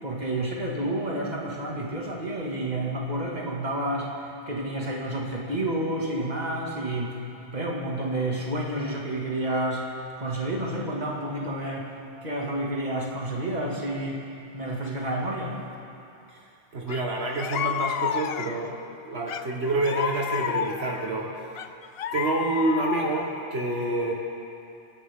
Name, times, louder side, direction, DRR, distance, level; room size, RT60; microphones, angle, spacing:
voice 1, 0.0-7.2 7.5-9.9 10.2-11.9 12.2-14.3 14.5-15.6, right 1 dB, 40° right, -3 dB, 2.3 m, -30 dB
voice 2, 16.7-21.6 22.1-24.1, right 2 dB, 70° right, -2 dB, 1.6 m, -28 dB
sound 1, 16.9-17.0 17.4-18.7 19.3-21.0 21.6-23.3, left 9 dB, 70° left, 0.7 m, -30 dB
29.5 x 11.0 x 3.7 m, 2.6 s
omnidirectional pair, 1.1 m